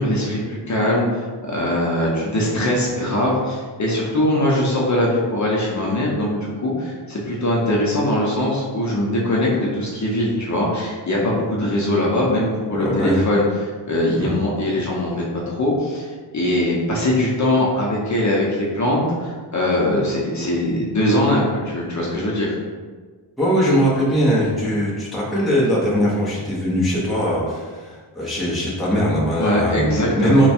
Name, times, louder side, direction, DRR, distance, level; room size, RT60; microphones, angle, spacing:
voice 1, 0.0-13.4 13.9-22.5 29.4-30.4, left 1 dB, 40° left, -4 dB, 0.7 m, -21 dB
voice 2, 12.8-13.2 14.1-14.3 23.4-30.5, equal, ahead, -7 dB, 0.7 m, -20 dB
3.3 x 2.2 x 4.2 m, 1.5 s
wide cardioid pair, 165°, 44 cm